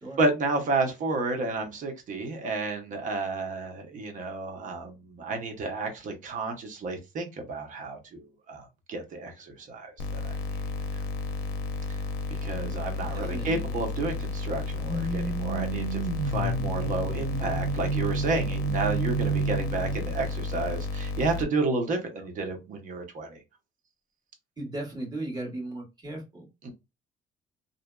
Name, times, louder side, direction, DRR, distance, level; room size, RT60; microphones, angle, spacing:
voice 1, 0.2-8.2 8.5-10.4 12.4-23.4 26.6-26.7, right 3 dB, 50° right, 0.8 m, -31 dB
sound 1, 10.0-21.4, left 3 dB, 90° left, 0.5 m, -33 dB
sound 2, 12.5-13.3 14.9-20.0, right 4 dB, ahead, 1.1 m, -31 dB
voice 2, 13.1-13.7 22.2-22.3 24.6-26.5, right 2 dB, 25° right, 1.4 m, -36 dB
2.5 x 2.2 x 2.2 m
cardioid pair, 110°, 17 cm